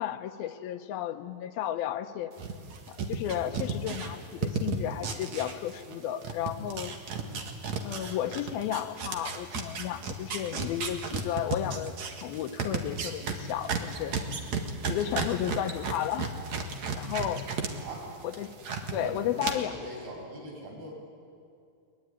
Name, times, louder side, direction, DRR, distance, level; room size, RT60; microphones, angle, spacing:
voice 1, 0.0-2.3 2.9-7.0 7.8-11.9 12.2-14.2 14.9-16.3 16.9-17.5 18.2-18.5 18.9-19.7, left 11 dB, 80° left, 9 dB, 2.7 m, -33 dB
sound 1, 2.4-6.0 6.2-17.7 18.0-18.9 19.4-19.5, right 5 dB, 55° right, 2.8 m, -33 dB
voice 2, 17.8-18.1 18.9-21.0, equal, 85° right, -1 dB, 8.2 m, -41 dB
23.5 x 22.5 x 9.9 m, 2.4 s
omnidirectional pair, 4.4 m